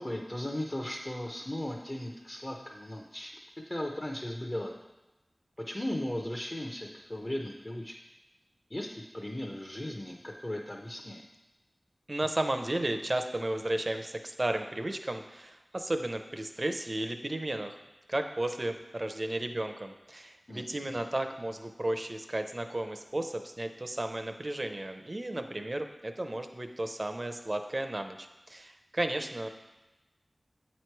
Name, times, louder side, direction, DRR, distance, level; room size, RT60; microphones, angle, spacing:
voice 1, 0.0-3.3 3.7-4.7 5.6-8.0 8.7-11.2 20.5-21.0, left 1 dB, 35° left, 0 dB, 0.6 m, -37 dB
voice 2, 12.1-17.8 18.1-29.5, right 1 dB, 45° right, 6 dB, 0.5 m, -34 dB
7.9 x 3.1 x 4.5 m, 1.0 s
wide cardioid pair, 45°, 0 cm